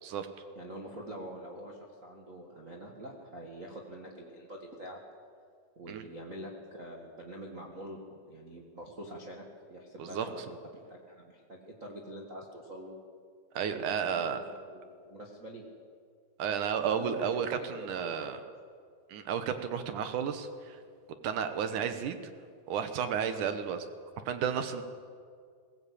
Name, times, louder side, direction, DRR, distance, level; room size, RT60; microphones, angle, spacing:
voice 1, 0.5-5.0 5.7-8.0 8.3-9.4 9.7-10.6 10.9-12.9 13.6-15.6 16.8-17.3 17.7-18.4, right 1 dB, 30° right, -2 dB, 1.5 m, -45 dB
voice 2, 10.0-10.3 13.5-14.4 16.4-18.4 19.1-20.8 21.2-22.2 22.7-23.9 24.3-24.8, right 7 dB, 65° right, 9 dB, 2.3 m, -32 dB
21.0 x 16.5 x 8.5 m, 2.1 s
omnidirectional pair, 4.4 m